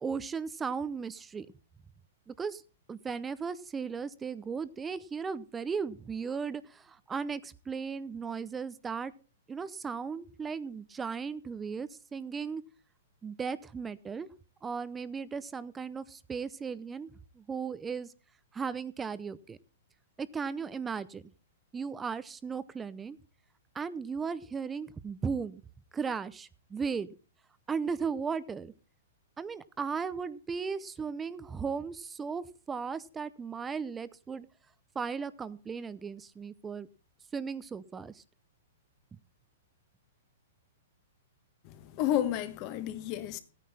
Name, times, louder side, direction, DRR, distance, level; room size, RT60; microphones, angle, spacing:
voice 1, 0.0-1.5 2.3-2.6 2.9-9.1 9.5-12.6 13.2-14.3 14.6-17.1 17.4-18.1 18.5-19.6 20.2-21.2 21.7-23.2 23.8-25.6 25.9-27.1 27.7-28.7 29.4-34.5 34.9-36.9 37.3-38.2, right 5 dB, 10° right, 0.6 m, -36 dB
voice 2, 41.6-43.4, left 11 dB, 35° left, 1.4 m, -31 dB
15.5 x 9.4 x 4.2 m
hypercardioid pair, 150°, 0 cm